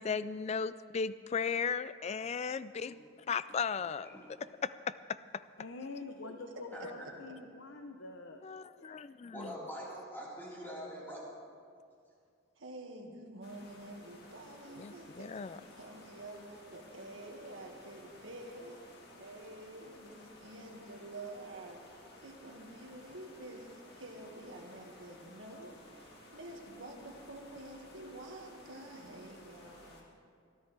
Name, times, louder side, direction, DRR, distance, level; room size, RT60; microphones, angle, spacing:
voice 1, 0.0-3.0 3.3-4.1 4.6-5.2 8.4-9.5 14.8-15.6, left 6 dB, 35° left, 16 dB, 0.3 m, -36 dB
voice 2, 3.8-4.2 6.7-7.1 9.3-11.3, equal, 10° left, -7 dB, 4.2 m, -44 dB
voice 3, 5.6-8.5 8.8-9.0, left 3 dB, 70° left, 4 dB, 0.8 m, -46 dB
voice 4, 12.6-18.8 19.2-30.1, right 1 dB, 70° right, 1 dB, 1.8 m, -49 dB
sound 1, 13.4-30.0, left 1 dB, 50° left, 2.2 m, -56 dB
22.0 x 13.5 x 3.4 m, 2.2 s
head